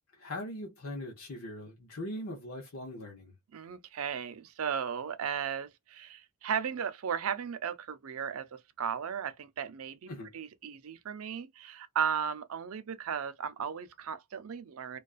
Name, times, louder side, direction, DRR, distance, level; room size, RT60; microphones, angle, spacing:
voice 1, 0.1-3.4 10.1-10.3, left 1 dB, 75° left, 0.8 m, -40 dB
voice 2, 3.5-15.0, right 7 dB, 75° right, 0.4 m, -36 dB
2.4 x 2.3 x 2.3 m
head